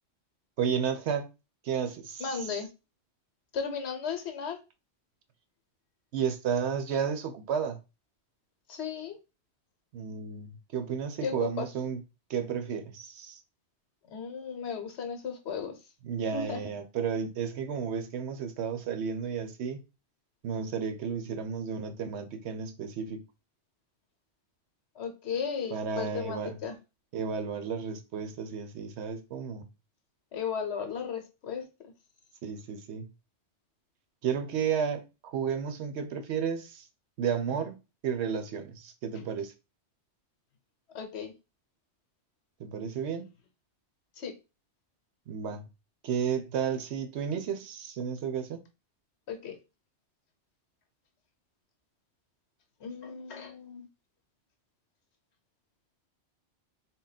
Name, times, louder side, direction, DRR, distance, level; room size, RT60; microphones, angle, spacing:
voice 1, 0.6-1.2 1.7-2.5 6.1-7.8 9.9-12.0 12.3-13.4 16.0-19.8 20.4-23.2 25.7-26.6 27.1-29.6 32.4-33.1 34.2-36.8 37.2-37.8 38.0-39.5 42.6-43.2 45.3-45.6 46.0-48.6, right 7 dB, 70° right, 0.9 m, -32 dB
voice 2, 2.2-2.7 3.5-4.6 8.7-9.2 11.2-11.7 14.1-15.8 16.3-16.6 25.0-26.8 30.3-31.7 37.5-37.6 40.9-41.3 44.2-44.3 49.3-49.6 52.8-53.9, left 6 dB, 70° left, 1.0 m, -35 dB
3.8 x 2.2 x 3.9 m
omnidirectional pair, 1.2 m